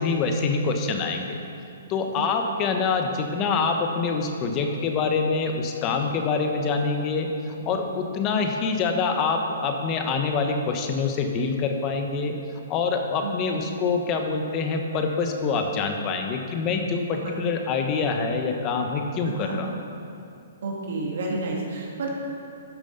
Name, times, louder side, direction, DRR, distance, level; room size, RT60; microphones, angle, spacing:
voice 1, 0.0-1.4 1.9-12.3 12.7-19.7, left 4 dB, 25° left, 4 dB, 1.1 m, -25 dB
voice 2, 13.2-13.6 17.1-17.3 19.2-19.6 20.6-22.1, right 3 dB, 65° right, -2 dB, 2.3 m, -31 dB
12.5 x 7.0 x 5.6 m, 2.6 s
hypercardioid pair, 150°, 0 cm